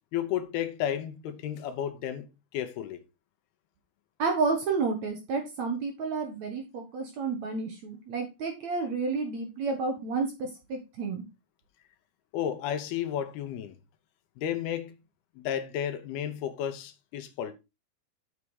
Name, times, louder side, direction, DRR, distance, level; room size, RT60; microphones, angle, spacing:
voice 1, 0.1-2.3 2.5-3.0 12.3-13.8 14.4-14.9 15.4-17.5, left 10 dB, 75° left, 2.8 m, -32 dB
voice 2, 4.2-11.2, right 4 dB, 55° right, 2.2 m, -30 dB
7.1 x 6.6 x 4.8 m
omnidirectional pair, 4.7 m